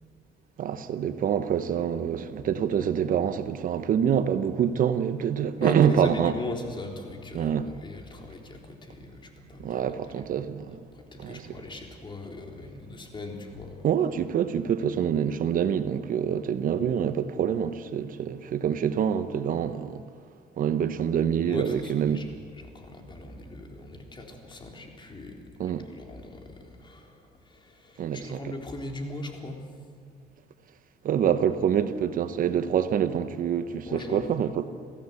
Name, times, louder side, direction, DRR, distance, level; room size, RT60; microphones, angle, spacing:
voice 1, 0.6-6.3 7.3-7.7 9.6-10.8 11.2-11.6 13.8-20.0 20.6-22.2 25.6-25.8 28.0-28.5 31.0-34.7, right 8 dB, 55° right, 1.0 m, -26 dB
voice 2, 5.6-10.4 10.9-13.9 21.4-22.3 22.5-25.4 25.8-27.2 27.5-29.6 33.8-34.2, left 2 dB, 30° left, 3.8 m, -39 dB
27.5 x 15.5 x 8.3 m
cardioid pair, 110°, 17 cm